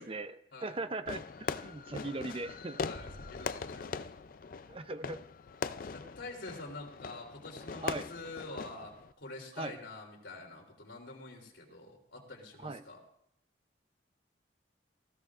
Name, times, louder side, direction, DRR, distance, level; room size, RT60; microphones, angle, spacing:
voice 1, 0.0-0.3 0.6-2.8 4.7-5.2 7.8-8.1 9.6-9.8 12.6-12.8, right 2 dB, 30° right, 11 dB, 0.6 m, -39 dB
Fireworks, 1.1-9.1, left 5 dB, 50° left, 0.4 m, -41 dB
voice 2, 2.8-4.1 5.9-13.0, left 2 dB, 85° left, -1 dB, 3.3 m, -46 dB
Explosion, 2.9-6.2, equal, 60° right, 1.3 m, -55 dB
19.5 x 14.5 x 2.5 m, 0.71 s
head